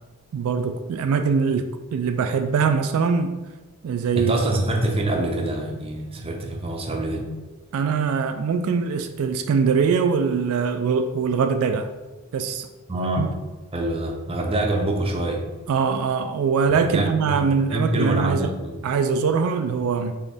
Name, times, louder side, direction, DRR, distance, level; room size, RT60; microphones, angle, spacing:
voice 1, 0.3-1.7 1.9-3.3 3.8-4.3 7.7-11.9 12.3-12.7 13.2-13.3 15.7-18.5 18.8-20.1, right 5 dB, 75° right, 8 dB, 0.3 m, -22 dB
voice 2, 4.2-7.3 12.9-13.3 13.7-15.4 16.7-17.4 17.7-18.9, right 1 dB, 25° right, 1 dB, 0.6 m, -25 dB
4.3 x 3.5 x 3.4 m, 1.2 s
head